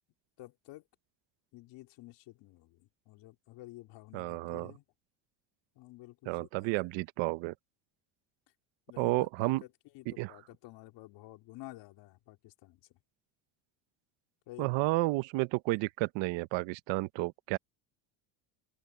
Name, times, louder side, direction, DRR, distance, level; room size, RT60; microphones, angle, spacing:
voice 1, 0.4-0.8 1.5-4.8 5.8-6.7 8.9-9.7 9.9-12.8 14.5-15.0, left 18 dB, 70° left, 4.1 m, -51 dB
voice 2, 4.1-4.7 6.3-7.5 9.0-9.6 10.1-10.4 14.6-17.6, right 21 dB, 80° right, 0.9 m, -31 dB
cardioid pair, 160°, 44 cm